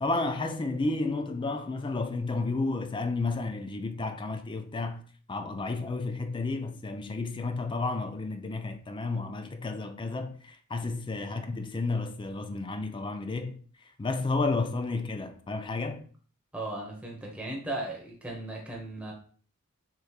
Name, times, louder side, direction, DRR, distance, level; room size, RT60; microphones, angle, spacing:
voice 1, 0.0-5.0 5.3-13.6 14.0-16.1, left 3 dB, 20° left, 0.4 m, -31 dB
voice 2, 16.5-19.1, right 1 dB, 5° right, 1.0 m, -36 dB
6.4 x 3.1 x 2.3 m
head